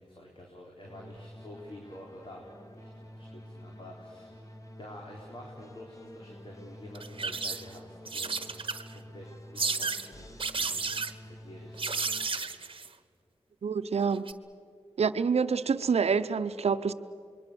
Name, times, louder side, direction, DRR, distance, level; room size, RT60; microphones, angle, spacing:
voice 1, 0.0-10.9 11.3-12.5, left 1 dB, 50° left, 4.1 m, -49 dB
sound 1, 0.8-12.4, equal, 30° left, 2.3 m, -49 dB
sound 2, 7.0-7.8 8.1-9.0 9.6-10.1 10.4-11.1 11.8-12.9 14.1-14.3, right 4 dB, 50° right, 1.2 m, -32 dB
voice 2, 13.6-14.3 15.0-16.9, right 5 dB, 70° right, 0.8 m, -27 dB
26.5 x 22.0 x 7.0 m
cardioid pair, 40°, 11 cm